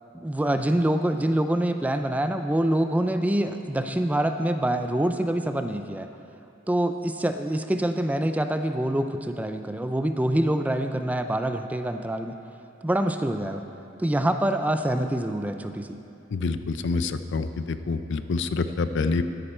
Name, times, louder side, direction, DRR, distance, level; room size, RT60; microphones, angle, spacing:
voice 1, 0.1-6.1 6.7-12.4 12.8-13.6 14.0-16.0, right 1 dB, 5° right, 7 dB, 0.3 m, -25 dB
voice 2, 16.3-19.2, left 4 dB, 60° left, 11 dB, 0.5 m, -27 dB
13.0 x 10.0 x 4.3 m, 2.8 s
head